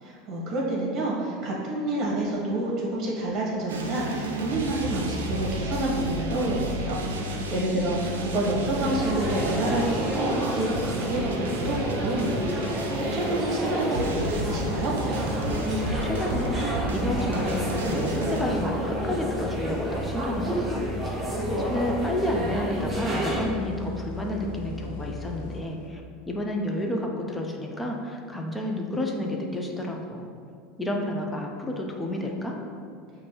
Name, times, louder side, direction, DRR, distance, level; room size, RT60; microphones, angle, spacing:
voice 1, 0.0-14.9, right 1 dB, 40° right, -4 dB, 1.1 m, -28 dB
sound 1, 3.7-18.4, right 1 dB, 90° right, 0.5 m, -32 dB
voice 2, 7.4-8.0 15.6-30.3 30.8-32.6, left 1 dB, 15° left, 1 dB, 0.6 m, -31 dB
sound 2, 8.8-23.5, right 1 dB, 20° right, 1.1 m, -30 dB
sound 3, 14.5-26.2, left 3 dB, 80° left, 0.5 m, -38 dB
5.9 x 2.6 x 3.0 m, 2.3 s
hypercardioid pair, 95°, 0 cm